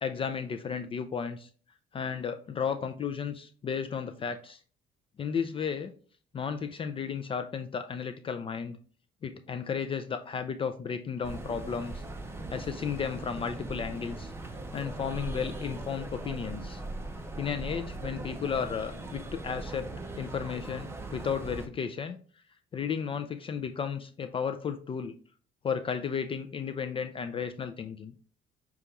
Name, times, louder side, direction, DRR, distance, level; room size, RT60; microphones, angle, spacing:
voice 1, 0.0-1.5 1.9-4.6 5.2-5.9 6.3-8.8 9.2-12.0 12.5-14.3 14.7-16.8 17.4-19.9 20.2-22.2 22.7-25.1 25.6-28.1, left 6 dB, 30° left, 8 dB, 0.4 m, -33 dB
sound 1, 11.2-21.7, right 2 dB, 15° right, 0.6 m, -39 dB
6.5 x 2.3 x 2.9 m, 0.42 s
cardioid pair, 110°, 17 cm